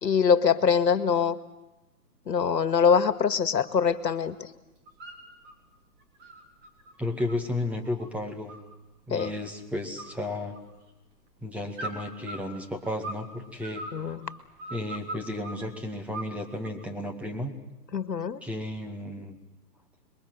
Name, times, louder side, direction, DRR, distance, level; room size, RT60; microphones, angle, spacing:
voice 1, 0.0-1.4 2.3-4.5 9.1-9.3 13.9-14.3 17.9-18.4, left 6 dB, 80° left, 12 dB, 1.9 m, -24 dB
sound 1, 2.6-3.1 3.4-4.4 4.6-5.6 6.0-8.8 9.2-9.6 10.0-10.9 11.7-13.3 13.6-15.7 16.1-16.9, right 2 dB, 20° right, 3.6 m, -41 dB
voice 2, 7.0-8.5 9.1-10.5 11.4-13.8 14.7-17.5 18.4-19.4, left 1 dB, 5° right, 3 dB, 1.9 m, -33 dB
27.0 x 22.0 x 7.9 m, 0.98 s
hypercardioid pair, 140°, 49 cm